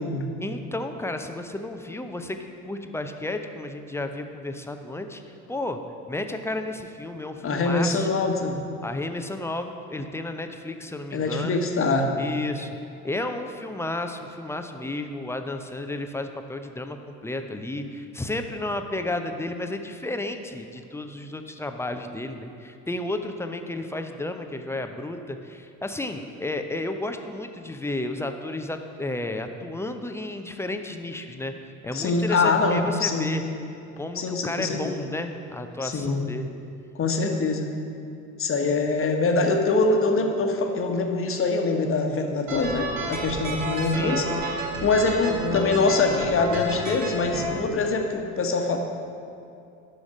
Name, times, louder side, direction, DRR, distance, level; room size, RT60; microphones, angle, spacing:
voice 1, 0.4-5.8 6.1-8.2 8.8-11.6 12.2-12.8 13.0-33.4 34.0-36.5 43.6-44.2, left 2 dB, 5° left, 6 dB, 0.6 m, -32 dB
voice 2, 7.4-8.6 11.1-12.1 31.9-33.3 34.2-34.9 35.8-36.2 37.0-37.7 38.4-44.2 44.8-48.8, left 3 dB, 30° left, 4 dB, 1.2 m, -24 dB
sound 1, 42.5-47.5, right 2 dB, 60° right, 1.8 m, -31 dB
11.0 x 6.4 x 6.2 m, 2.5 s
figure-of-eight pair, 60°, 44 cm